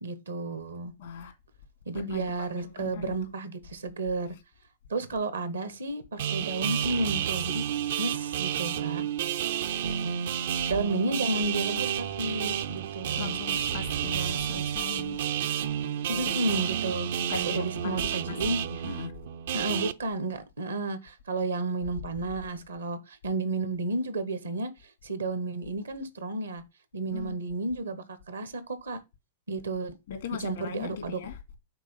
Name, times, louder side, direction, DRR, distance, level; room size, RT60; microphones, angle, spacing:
voice 1, 0.0-0.9 1.9-4.3 4.9-7.6 8.0-9.1 10.7-13.4 16.1-17.1 17.3-18.6 19.5-24.7 25.0-26.6 26.9-29.0 29.5-30.0 30.4-31.2, right 2 dB, 85° right, 1.1 m, -32 dB
voice 2, 1.0-1.3 2.1-2.5 2.8-3.1 13.2-15.2 16.1-16.3 17.3-18.0 18.3-18.4 18.6-19.1 27.1-27.3 30.1-31.4, left 5 dB, 70° left, 2.2 m, -38 dB
sound 1, 6.2-19.9, right 9 dB, 65° right, 0.5 m, -30 dB
6.0 x 4.1 x 5.4 m
hypercardioid pair, 105°, 0 cm